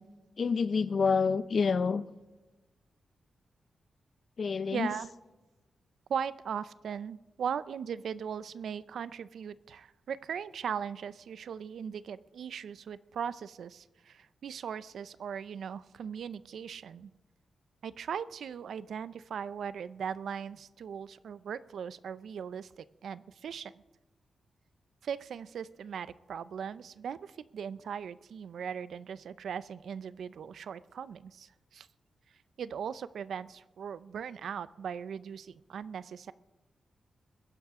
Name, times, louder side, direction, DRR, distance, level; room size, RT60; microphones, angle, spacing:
voice 1, 0.4-2.0 4.4-4.9, left 5 dB, 50° left, 15 dB, 0.5 m, -27 dB
voice 2, 4.7-5.1 6.1-17.1 17.8-23.7 25.0-31.9 32.6-36.3, right 7 dB, 80° right, 16 dB, 0.5 m, -39 dB
21.0 x 10.5 x 3.6 m, 1.1 s
wide cardioid pair, 145°, 0 cm